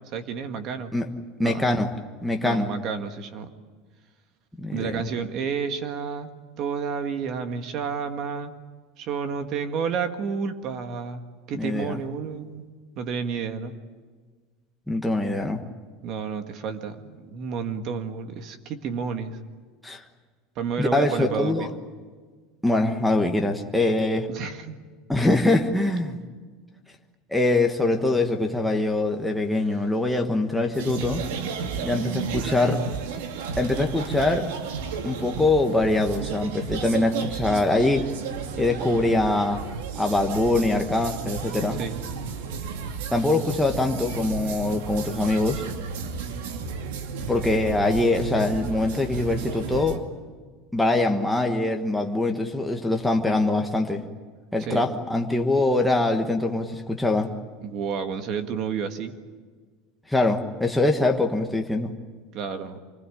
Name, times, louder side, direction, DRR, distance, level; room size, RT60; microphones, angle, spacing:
voice 1, 0.1-0.9 1.4-1.6 2.4-3.5 4.7-6.3 6.6-8.5 9.0-11.2 11.5-12.6 12.9-13.7 16.0-19.4 20.5-21.7 24.3-24.7 32.4-32.9 41.8-42.0 54.6-54.8 57.6-59.1 62.3-62.8, right 6 dB, 35° right, 8 dB, 1.7 m, -30 dB
voice 2, 1.4-1.9 2.2-2.7 4.6-5.0 11.5-12.0 14.9-15.6 19.8-20.0 20.8-21.7 22.6-24.3 25.1-26.2 27.3-31.2 31.8-32.8 33.6-34.5 35.0-38.1 38.6-39.6 39.9-41.8 43.1-45.6 47.3-50.0 50.7-54.0 54.5-57.3 60.1-61.9, left 2 dB, ahead, 1 dB, 1.3 m, -23 dB
sound 1, 30.7-50.0, right 6 dB, 85° right, 2.4 m, -33 dB
25.5 x 19.5 x 10.0 m, 1.5 s
cardioid pair, 175°, 0 cm